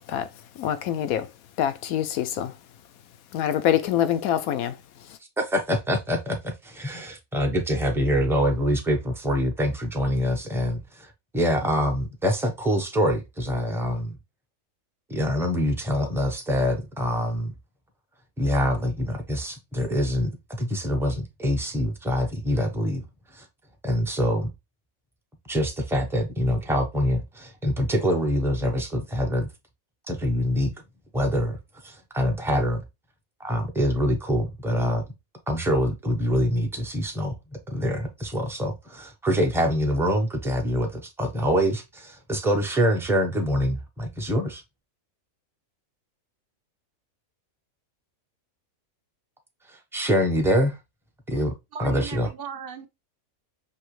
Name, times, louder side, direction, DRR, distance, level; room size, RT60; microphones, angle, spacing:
voice 1, 0.6-1.3 1.6-2.5 3.3-5.2, left 10 dB, 90° left, 1.1 m, -25 dB
voice 2, 5.4-14.2 15.1-17.5 18.4-20.3 20.6-23.0 23.3-23.4 23.8-24.5 25.5-29.5 30.1-30.7 31.1-31.6 31.8-32.8 33.4-35.0 35.5-44.6 49.7-50.8 51.3-52.3, equal, 5° right, 0.6 m, -25 dB
voice 3, 51.7-52.9, right 7 dB, 60° right, 0.6 m, -37 dB
5.5 x 2.9 x 3.1 m
omnidirectional pair, 1.5 m